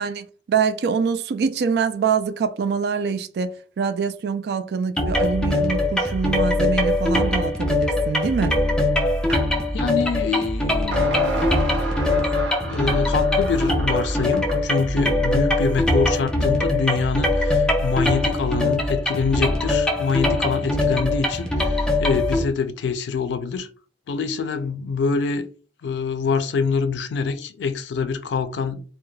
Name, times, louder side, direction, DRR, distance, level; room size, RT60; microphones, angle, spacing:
voice 1, 0.0-8.6, right 6 dB, 65° right, 0.3 m, -24 dB
sound 1, 5.0-22.4, left 2 dB, 5° left, 0.4 m, -22 dB
sound 2, 9.3-9.5 10.9-14.7, right 2 dB, 90° right, 0.7 m, -29 dB
voice 2, 9.7-11.4 12.6-23.7 24.1-25.4 25.8-28.8, left 5 dB, 85° left, 0.4 m, -25 dB
2.2 x 2.1 x 3.1 m
head